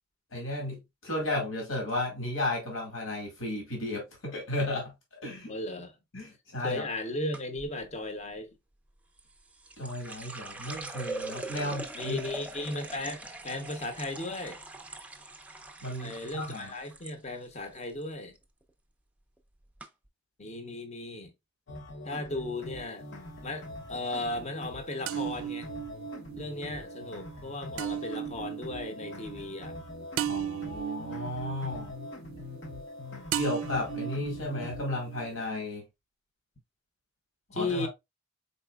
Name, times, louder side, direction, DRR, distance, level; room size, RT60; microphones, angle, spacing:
voice 1, 0.3-4.9 5.2-5.5 6.1-6.9 9.8-12.2 15.8-16.7 30.2-31.9 33.4-35.8 37.5-37.9, left 1 dB, 80° left, 1.9 m, -34 dB
voice 2, 5.5-6.0 6.6-8.5 11.5-14.6 16.0-18.4 20.4-21.3 22.0-23.1 23.4-25.7 26.4-29.8 37.5-37.9, left 2 dB, 35° left, 0.8 m, -36 dB
sound 1, 7.3-7.7 9.2-17.1 17.4-18.0 18.4-18.7 19.4-19.5 19.8-19.9, right 2 dB, 5° right, 0.4 m, -42 dB
sound 2, 21.7-34.8, left 1 dB, 60° left, 0.9 m, -43 dB
sound 3, 22.5-23.4 25.1-33.0 33.3-35.4, right 10 dB, 85° right, 0.4 m, -37 dB
4.3 x 4.0 x 2.3 m
head